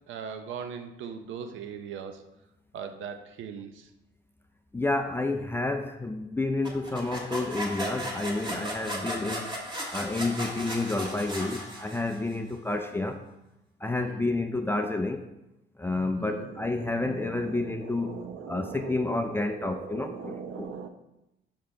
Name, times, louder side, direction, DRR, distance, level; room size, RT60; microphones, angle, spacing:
voice 1, 0.1-2.2 2.7-3.9 14.0-14.2 16.2-20.9, right 6 dB, 75° right, 7 dB, 0.7 m, -40 dB
voice 2, 4.7-9.5 9.9-13.2 13.8-15.3 15.8-18.2 18.5-20.8, left 2 dB, 10° left, 5 dB, 0.4 m, -30 dB
sound 1, 6.6-12.3, equal, 25° right, 1.5 m, -36 dB
5.6 x 4.7 x 3.8 m, 0.92 s
cardioid pair, 90°, 20 cm